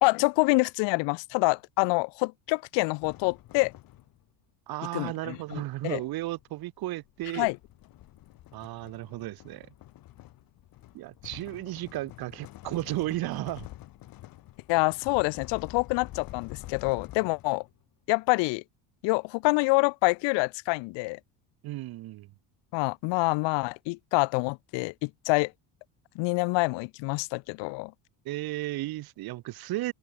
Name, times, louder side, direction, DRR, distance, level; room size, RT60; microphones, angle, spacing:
voice 1, 0.0-3.7 4.9-6.0 7.3-7.6 14.7-17.6 18.1-18.6 19.0-21.2 22.7-25.5 26.1-27.9, left 27 dB, 65° left, 1.2 m, -26 dB
sound 1, 3.0-4.3 5.5-17.8, left 15 dB, 45° left, 5.0 m, -47 dB
voice 2, 4.7-7.5 8.5-9.7 10.9-13.7 21.6-22.3 28.3-29.9, right 17 dB, 50° right, 3.9 m, -34 dB
open air
cardioid pair, 170°, 46 cm